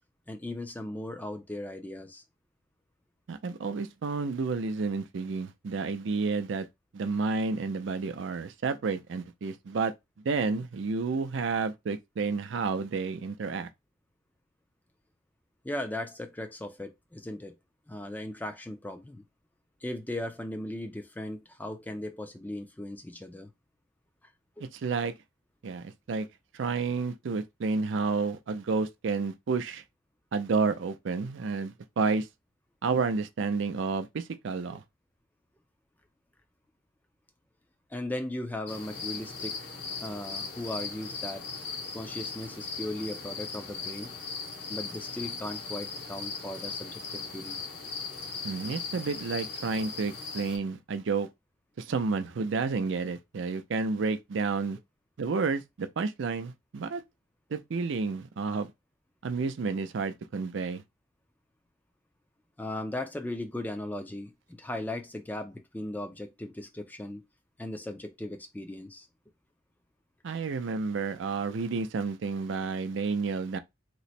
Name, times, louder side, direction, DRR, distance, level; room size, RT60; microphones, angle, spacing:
voice 1, 0.3-2.2 15.6-17.5 17.9-19.2 19.8-23.5 24.2-24.3 24.6-24.7 34.7-34.8 37.9-39.7 40.0-41.4 41.9-44.1 44.7-47.6 62.6-67.3 67.6-69.1, left 1 dB, 10° left, 0.4 m, -37 dB
voice 2, 3.3-6.7 6.9-9.9 10.2-13.7 24.6-25.1 25.6-26.3 26.5-29.8 30.3-32.3 32.8-34.8 48.4-51.3 51.8-54.8 55.2-57.0 57.5-58.7 59.2-60.8 70.2-73.6, right 4 dB, 65° right, 0.4 m, -30 dB
sound 1, 38.7-50.6, left 5 dB, 55° left, 0.8 m, -38 dB
3.0 x 2.0 x 4.1 m
head